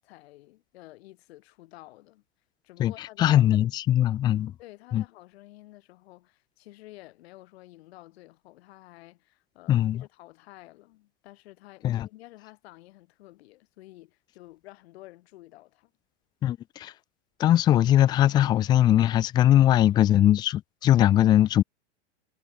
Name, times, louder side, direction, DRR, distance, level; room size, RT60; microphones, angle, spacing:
voice 1, 0.0-2.2 2.6-3.4 4.6-15.9, left 18 dB, 60° left, 3.7 m, -50 dB
voice 2, 2.8-4.5 4.9-5.0 9.7-10.0 11.8-12.1 16.4-16.9 17.4-21.6, left 12 dB, 15° left, 0.3 m, -21 dB
hypercardioid pair, 120°, 36 cm